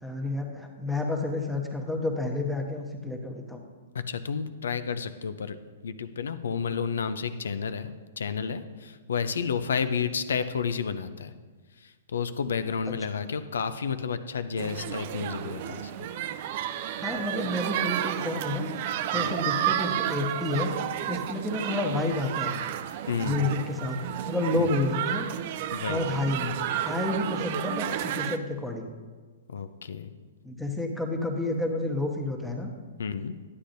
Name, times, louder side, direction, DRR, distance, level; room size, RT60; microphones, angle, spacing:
voice 1, 0.0-3.6 17.0-20.7 21.1-22.6 23.2-24.0 24.3-25.3 25.9-28.9 30.4-32.7, left 2 dB, ahead, 1 dB, 1.1 m, -30 dB
voice 2, 3.9-5.6 5.8-11.3 12.1-16.1 19.1-19.3 23.1-23.4 24.6-24.7 25.7-26.2 29.5-30.1 33.0-33.4, left 6 dB, 75° left, 12 dB, 0.5 m, -31 dB
sound 1, 14.6-28.4, right 11 dB, 50° right, 0.4 m, -31 dB
11.0 x 8.6 x 2.6 m, 1.4 s
hypercardioid pair, 120°, 0 cm